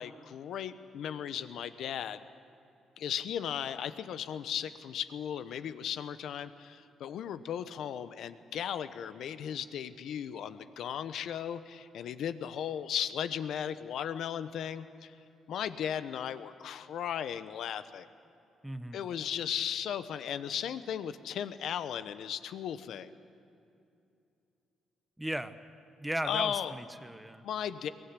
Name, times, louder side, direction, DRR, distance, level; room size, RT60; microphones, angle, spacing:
voice 1, 0.0-2.2 3.0-15.1 15.5-18.1 18.9-23.1 26.2-26.7 27.4-27.9, left 9 dB, 75° left, 12 dB, 1.0 m, -36 dB
voice 2, 18.6-19.0 25.2-25.5 26.0-27.4, right 1 dB, 5° right, 10 dB, 1.1 m, -36 dB
22.5 x 18.5 x 9.9 m, 2.6 s
cardioid pair, 90°, 0 cm